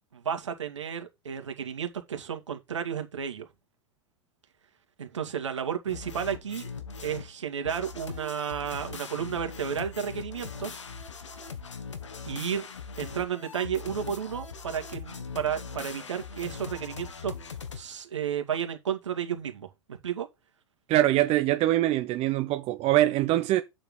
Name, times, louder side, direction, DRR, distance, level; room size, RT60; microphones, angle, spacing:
voice 1, 0.1-3.5 5.0-6.7 7.0-10.8 12.3-12.7 13.0-17.3 17.7-20.3, right 8 dB, 85° right, 2.3 m, -32 dB
sound 1, 5.9-7.3 7.7-17.8, left 5 dB, 85° left, 1.7 m, -40 dB
voice 2, 20.9-23.6, right 15 dB, 45° right, 0.9 m, -23 dB
8.7 x 7.3 x 3.8 m
hypercardioid pair, 95°, 15 cm